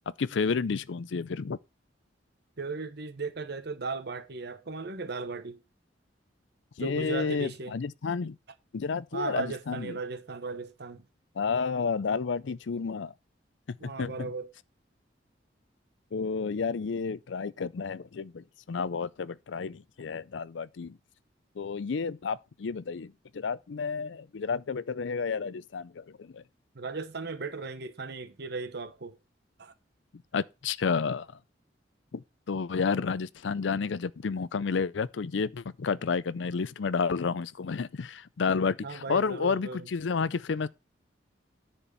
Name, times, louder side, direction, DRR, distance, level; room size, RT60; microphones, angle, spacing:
voice 1, 0.2-1.6 6.8-8.4 8.7-10.0 11.4-13.1 13.8-14.3 16.1-21.0 21.6-26.4 30.3-31.3 32.1-40.7, left 5 dB, 75° left, 0.5 m, -31 dB
voice 2, 2.6-5.6 6.8-7.7 9.1-11.0 13.8-14.5 26.7-29.2 29.6-29.7 38.8-39.9, right 4 dB, 60° right, 1.0 m, -36 dB
10.0 x 4.4 x 6.8 m
head